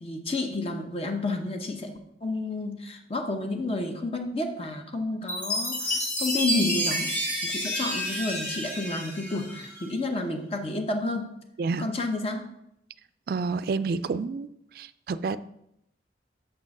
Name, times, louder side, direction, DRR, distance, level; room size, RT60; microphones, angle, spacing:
voice 1, 0.0-1.9 2.2-7.1 7.4-11.3 11.8-12.5, left 2 dB, 30° left, 5 dB, 0.8 m, -30 dB
Chime, 5.3-9.9, equal, 10° left, 1.3 m, -30 dB
voice 2, 11.6-11.9 13.3-14.5 14.7-15.4, right 4 dB, 55° right, 14 dB, 0.3 m, -29 dB
6.5 x 4.6 x 5.9 m, 0.79 s
head